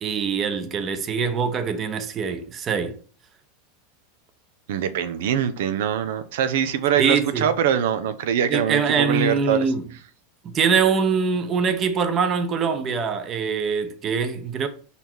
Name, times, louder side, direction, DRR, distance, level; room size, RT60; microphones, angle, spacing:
voice 1, 0.0-3.0 7.0-7.5 8.5-9.9 10.4-14.7, right 6 dB, 30° right, 0.9 m, -23 dB
voice 2, 4.7-9.6, right 8 dB, 75° right, 0.7 m, -23 dB
5.4 x 4.2 x 4.6 m
supercardioid pair, 130°, 0 cm